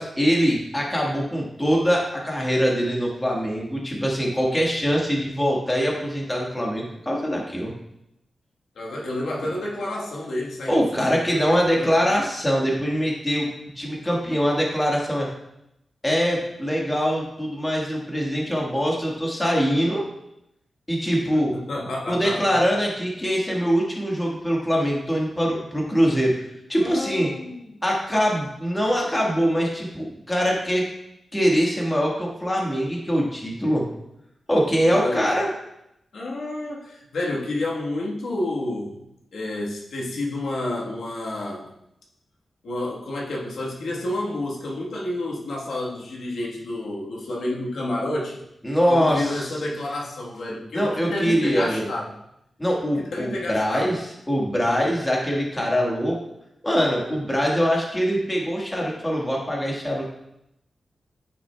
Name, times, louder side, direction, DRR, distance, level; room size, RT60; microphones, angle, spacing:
voice 1, 0.0-7.7 10.7-13.5 13.7-15.3 16.0-20.0 20.9-21.5 22.1-26.3 26.7-27.3 27.8-30.8 31.3-33.8 34.5-35.5 48.6-49.5 50.7-51.9 52.6-54.0 54.3-56.2 56.6-60.1, equal, 15° left, -2 dB, 1.5 m, -23 dB
voice 2, 8.7-12.1 21.3-22.7 26.8-27.8 34.6-35.3 36.1-39.0 39.3-41.7 42.6-48.4 48.9-52.1 52.9-54.0, left 1 dB, 90° left, -3 dB, 1.3 m, -30 dB
9.6 x 6.0 x 2.3 m, 0.83 s
wide cardioid pair, 115°, 0 cm